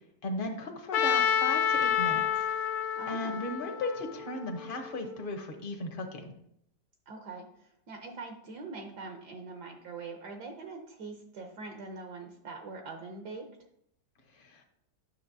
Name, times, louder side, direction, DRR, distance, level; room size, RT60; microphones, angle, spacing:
voice 1, 0.2-2.5 3.1-6.3 14.3-14.6, left 2 dB, 40° left, 4 dB, 0.9 m, -36 dB
Trumpet, 0.9-5.0, left 8 dB, 70° left, 1.0 m, -29 dB
voice 2, 2.9-3.4 7.1-13.4, right 3 dB, 65° right, 3 dB, 1.3 m, -43 dB
9.9 x 6.5 x 2.7 m, 0.74 s
omnidirectional pair, 2.0 m